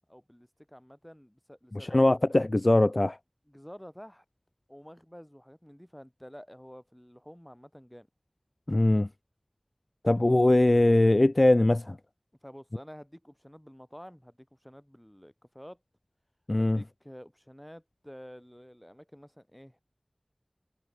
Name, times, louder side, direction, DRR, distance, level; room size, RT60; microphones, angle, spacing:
voice 1, 0.1-2.0 3.5-4.2 4.7-8.1 12.4-15.8 16.6-19.8, equal, 10° left, 5.0 m, -49 dB
voice 2, 1.7-3.2 8.7-9.1 10.0-12.0 16.5-16.8, left 1 dB, 50° left, 0.5 m, -21 dB
wide cardioid pair, 40°, 0 cm